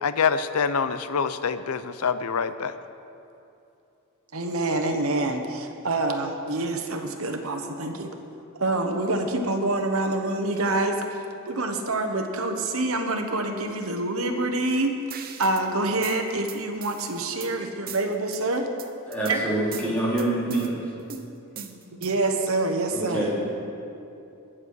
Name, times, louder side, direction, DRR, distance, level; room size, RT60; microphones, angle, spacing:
voice 1, 0.0-2.7, left 6 dB, 90° left, 12 dB, 0.6 m, -25 dB
voice 2, 4.3-8.1 8.5-11.2 11.5-14.9 15.4-18.7 19.3-19.4 22.0-23.2, right 2 dB, 70° right, 4 dB, 1.2 m, -26 dB
sound 1, 15.1-15.7 16.0-17.5 17.9-18.4 18.8-19.4 19.7-20.7 21.1-22.3, right 8 dB, 45° right, 0.8 m, -40 dB
voice 3, 19.1-20.8 22.9-23.4, right 1 dB, 5° left, -8 dB, 3.6 m, -26 dB
20.5 x 7.6 x 4.9 m, 2.8 s
head